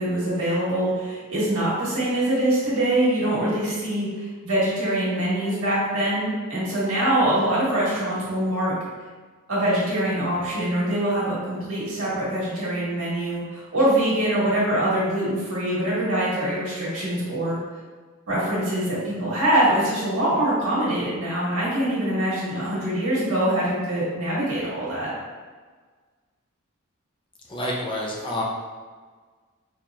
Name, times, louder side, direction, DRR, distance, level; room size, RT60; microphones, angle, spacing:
voice 1, 0.0-8.7 9.5-17.6 18.3-25.1, right 1 dB, 80° right, -8 dB, 1.5 m, -24 dB
voice 2, 27.5-28.4, left 1 dB, 25° left, -3 dB, 0.5 m, -28 dB
4.1 x 3.0 x 2.3 m, 1.5 s
head